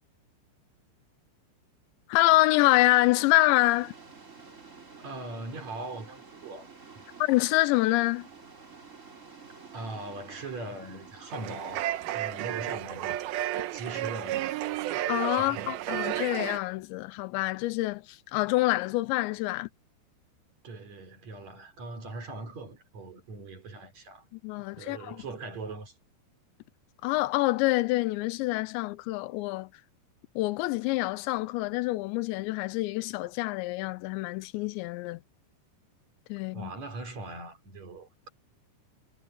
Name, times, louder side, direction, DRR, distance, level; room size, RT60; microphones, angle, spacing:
voice 1, 2.1-3.9 7.2-8.3 15.1-19.7 24.4-25.2 27.0-29.7 30.4-35.2 36.3-36.7, left 19 dB, 85° left, 2.9 m, -26 dB
sound 1, 2.4-12.8, right 5 dB, 20° right, 2.7 m, -50 dB
voice 2, 5.0-6.7 6.9-7.0 9.7-11.8 12.1-13.3 13.7-14.5 15.3-15.8 20.6-24.2 24.8-25.9 36.5-38.3, right 2 dB, 40° right, 5.0 m, -40 dB
sound 2, 11.3-16.6, right 13 dB, 75° right, 2.5 m, -32 dB
omnidirectional pair, 5.1 m